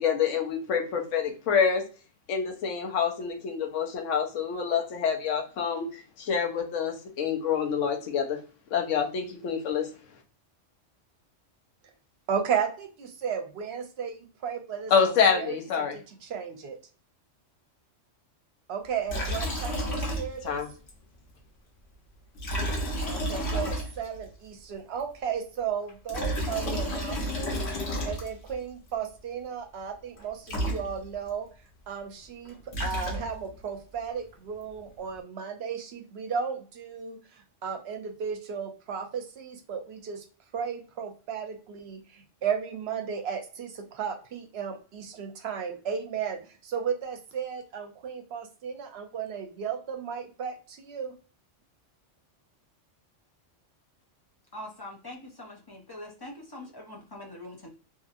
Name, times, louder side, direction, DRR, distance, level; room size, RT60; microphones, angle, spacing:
voice 1, 0.0-1.8 2.3-5.9 6.2-8.4 8.7-9.9 14.9-16.0 20.4-20.7, left 6 dB, 90° left, 4 dB, 1.0 m, -27 dB
voice 2, 12.3-16.8 18.7-20.6 23.1-31.5 31.9-40.2 40.5-51.1, right 7 dB, 65° right, 5 dB, 0.8 m, -34 dB
Liquid, 19.1-20.6 20.9-21.0 22.4-24.3 25.9-28.6 30.2-30.3 30.5-31.3 32.5-33.6, equal, 65° left, 1.1 m, -31 dB
voice 3, 54.5-57.7, left 1 dB, 40° left, -1 dB, 0.3 m, -43 dB
2.8 x 2.7 x 2.4 m, 0.36 s
omnidirectional pair, 1.2 m